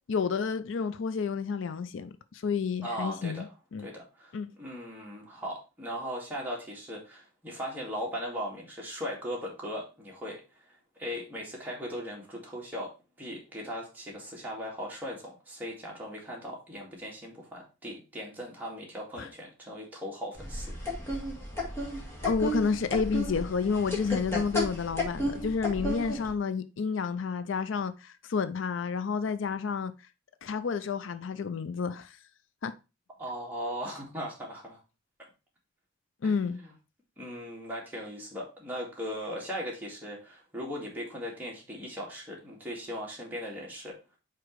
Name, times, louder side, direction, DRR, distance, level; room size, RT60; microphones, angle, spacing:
voice 1, 0.1-3.5 3.7-3.9 4.3-4.5 19.2-19.3 22.2-29.9 30.4-32.2 32.6-32.7 36.2-36.6, left 5 dB, 70° left, 0.4 m, -30 dB
voice 2, 2.8-3.5 3.8-10.4 11.0-12.9 13.2-20.7 33.2-34.8 36.2-36.7 37.2-44.0, equal, 10° right, 2.1 m, -38 dB
sound 1, 20.4-26.3, left 1 dB, 15° left, 1.8 m, -33 dB
5.0 x 4.6 x 4.6 m
head